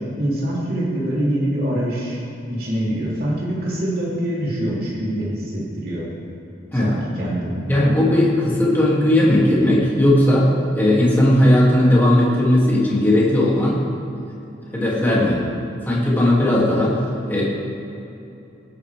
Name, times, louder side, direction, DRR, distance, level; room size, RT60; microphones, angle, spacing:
voice 1, 0.0-2.2 2.5-6.1 6.7-7.6, right 1 dB, 50° right, -7 dB, 3.1 m, -24 dB
voice 2, 7.6-13.8 14.7-15.4 15.9-17.0 17.3-17.4, left 1 dB, 10° left, -6 dB, 2.5 m, -17 dB
19.0 x 9.4 x 3.5 m, 2.9 s
head